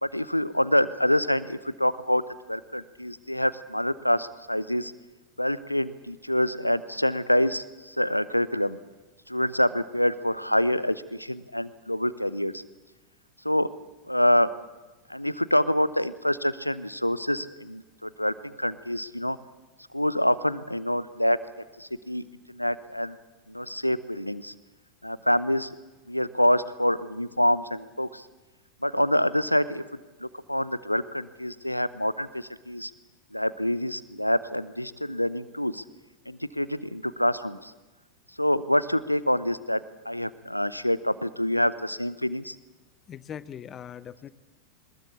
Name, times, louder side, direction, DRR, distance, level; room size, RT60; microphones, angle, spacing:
voice 1, 0.0-2.2 2.5-4.9 5.4-8.8 9.3-12.6 13.4-13.7 14.1-14.5 15.1-19.4 19.9-21.4 21.8-23.2 23.5-24.5 25.0-25.8 26.1-28.3 28.8-32.9 33.3-35.8 36.3-37.7 38.4-42.6, left 1 dB, 90° left, 16 dB, 0.8 m, -26 dB
voice 2, 43.1-44.3, left 9 dB, 25° left, 17 dB, 0.9 m, -40 dB
22.0 x 20.5 x 8.3 m, 1.2 s
figure-of-eight pair, 90°, 0 cm